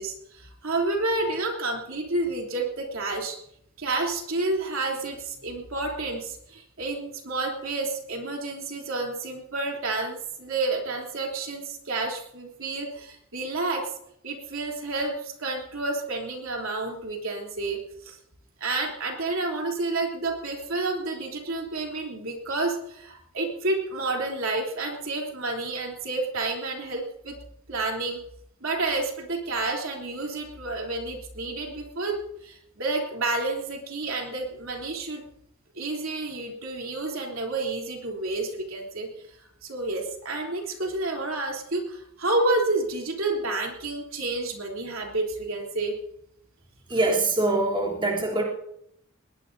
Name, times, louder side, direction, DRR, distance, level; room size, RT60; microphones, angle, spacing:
voice 1, 0.0-3.4 3.8-13.9 14.2-17.8 18.0-18.2 18.6-27.3 27.7-28.2 28.6-35.3 35.7-39.1 39.6-46.0, right 2 dB, 65° right, 0 dB, 3.4 m, -30 dB
voice 2, 46.9-48.4, right 2 dB, 25° right, -4 dB, 3.3 m, -24 dB
21.0 x 20.0 x 2.7 m, 0.75 s
head